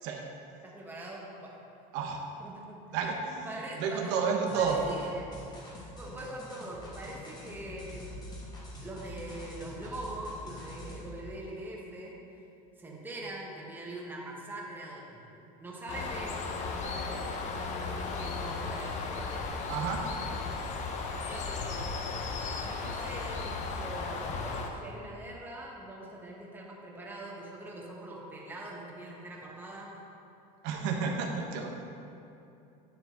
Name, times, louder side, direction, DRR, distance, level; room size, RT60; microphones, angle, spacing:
voice 1, 0.6-1.6 2.4-2.8 3.4-4.1 4.5-5.3 5.9-8.2 8.8-12.1 12.8-17.2 17.8-19.7 21.2-22.0 22.6-30.0, right 1 dB, 10° right, -3 dB, 1.2 m, -43 dB
voice 2, 2.9-4.8 19.7-20.0 30.6-31.7, right 6 dB, 65° right, 1 dB, 1.1 m, -31 dB
sound 1, 4.5-11.2, left 1 dB, 20° left, 1.5 m, -45 dB
Bird, 15.9-24.7, left 4 dB, 40° left, 0.8 m, -35 dB
10.0 x 7.2 x 3.9 m, 2.8 s
cardioid pair, 150°, 19 cm